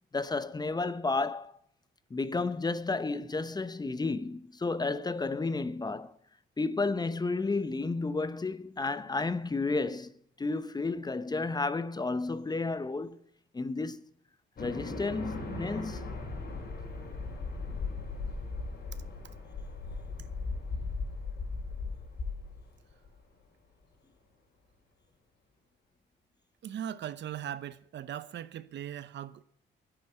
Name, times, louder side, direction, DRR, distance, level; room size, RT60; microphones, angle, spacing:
voice 1, 0.1-1.5 2.1-6.1 6.6-10.1 10.4-13.2 13.5-14.0 14.6-16.1, left 3 dB, 20° left, 0.7 m, -32 dB
sound 1, 14.6-23.1, left 3 dB, 55° left, 4.9 m, -38 dB
voice 2, 26.6-29.4, right 10 dB, 65° right, 0.8 m, -39 dB
10.5 x 8.9 x 8.3 m
cardioid pair, 90°, 20 cm